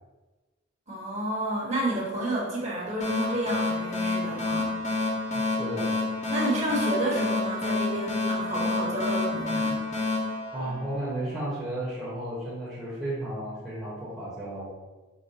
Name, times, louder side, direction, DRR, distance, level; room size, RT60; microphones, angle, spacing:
voice 1, 0.9-5.0 6.3-9.8, right 1 dB, 35° right, -6 dB, 1.3 m, -30 dB
sound 1, 3.0-11.3, left 2 dB, 40° left, 0.8 m, -29 dB
voice 2, 5.6-6.0 10.5-14.8, right 1 dB, ahead, -10 dB, 1.0 m, -33 dB
5.1 x 2.1 x 4.2 m, 1.2 s
head